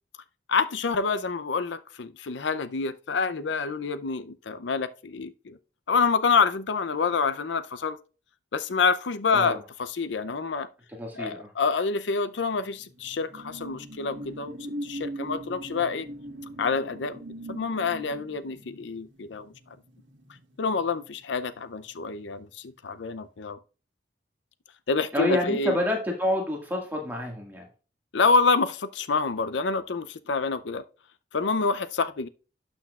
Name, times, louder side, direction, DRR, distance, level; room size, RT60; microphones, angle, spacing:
voice 1, 0.5-5.6 5.9-8.0 8.5-10.7 11.1-14.6 14.8-16.1 16.6-17.2 17.5-19.5 20.6-23.6 24.9-25.8 28.1-30.8 31.3-32.3, left 4 dB, 75° left, 0.6 m, -27 dB
voice 2, 10.9-11.5 25.1-27.7, left 1 dB, 10° right, 1.8 m, -28 dB
sound 1, 12.4-21.4 21.8-22.0, right 1 dB, 85° right, 1.5 m, -41 dB
12.0 x 6.2 x 2.4 m
head